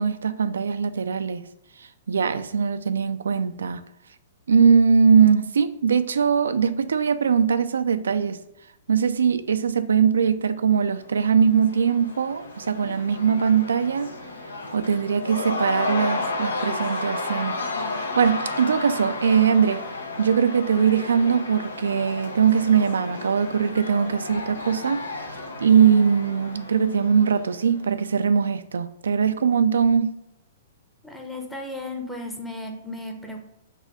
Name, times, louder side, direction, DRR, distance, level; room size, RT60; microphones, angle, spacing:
voice 1, 0.0-1.5 1.8-3.8 4.5-8.4 8.9-14.2 14.7-19.9 20.2-30.2, right 6 dB, 85° right, 0.3 m, -21 dB
Cheering / Crowd, 11.0-27.9, left 2 dB, 90° left, 0.8 m, -33 dB
voice 2, 31.0-33.4, left 2 dB, 5° left, 0.7 m, -35 dB
4.0 x 2.6 x 4.8 m
hypercardioid pair, 135°, 0 cm